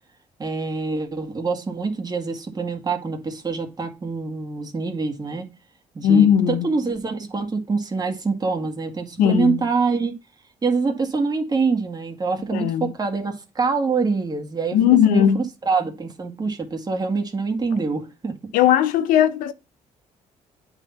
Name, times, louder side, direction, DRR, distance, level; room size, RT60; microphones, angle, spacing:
voice 1, 0.4-5.5 5.9-10.1 10.6-14.8 15.1-18.4, right 4 dB, 30° right, 2.0 m, -25 dB
voice 2, 6.0-6.6 9.2-9.6 12.5-12.9 14.7-15.4 18.5-19.5, left 9 dB, 85° left, 0.7 m, -17 dB
8.9 x 4.1 x 4.2 m
cardioid pair, 85°, 14 cm